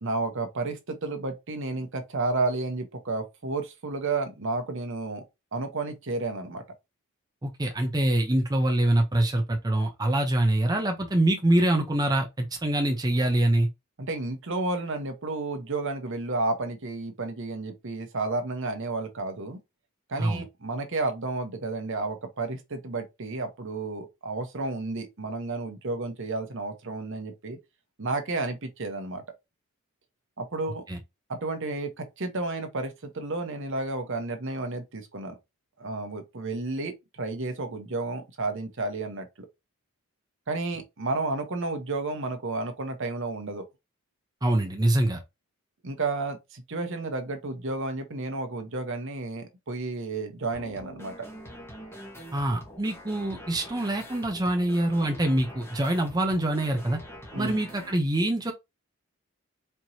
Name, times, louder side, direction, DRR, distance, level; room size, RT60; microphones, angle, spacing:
voice 1, 0.0-5.2 5.5-6.6 14.0-19.6 20.1-27.6 28.0-29.2 30.4-30.8 31.3-35.3 35.8-39.5 40.5-43.7 45.8-51.1 57.3-57.6, right 3 dB, 60° right, 0.9 m, -31 dB
voice 2, 7.4-13.7 20.2-20.4 30.9-31.0 44.4-45.2 52.3-57.0 57.4-58.5, right 1 dB, 15° right, 0.6 m, -25 dB
sound 1, 50.5-57.9, equal, 10° left, 1.1 m, -45 dB
4.4 x 2.9 x 2.7 m
head